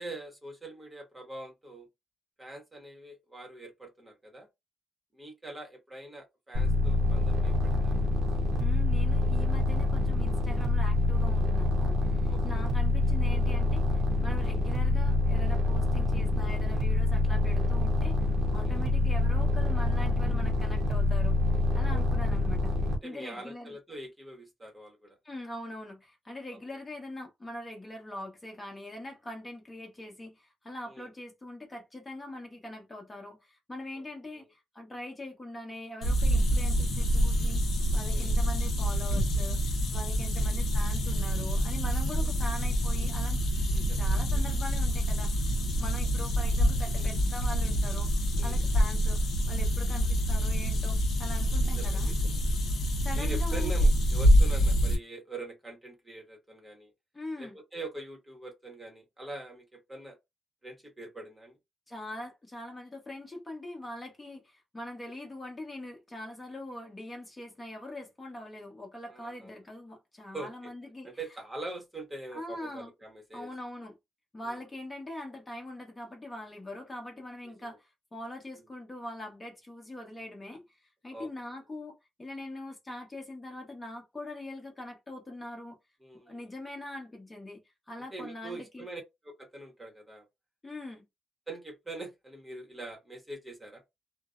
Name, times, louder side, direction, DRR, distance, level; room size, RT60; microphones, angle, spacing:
voice 1, 0.0-1.9 2.4-4.5 5.1-8.0 12.3-12.4 18.6-18.8 21.9-22.0 22.8-25.2 26.5-26.6 30.9-31.1 33.9-34.1 34.4-34.5 38.0-38.3 40.3-40.5 43.7-44.0 47.0-47.1 48.4-48.6 51.7-52.4 53.1-56.9 57.4-60.2 60.6-61.6 69.1-69.5 70.3-70.7 71.0-73.5 74.5-74.6 77.5-77.8 78.5-78.7 81.1-81.3 86.0-86.5 88.1-90.3 91.5-93.8, right 2 dB, 15° right, 0.9 m, -44 dB
sound 1, 6.5-23.0, left 1 dB, 75° right, 0.7 m, -26 dB
voice 2, 8.6-21.4 21.7-22.7 23.0-23.8 25.2-37.6 37.9-43.5 44.0-48.1 48.4-49.2 49.5-52.1 53.0-53.7 57.1-57.6 61.9-71.1 72.3-72.9 73.3-74.0 74.3-80.6 81.0-85.8 86.3-87.6 87.9-88.9 90.6-91.0, left 1 dB, 20° left, 0.9 m, -42 dB
sound 2, 36.0-54.9, equal, 60° left, 0.7 m, -26 dB
2.5 x 2.0 x 2.4 m
cardioid pair, 90°, 0 cm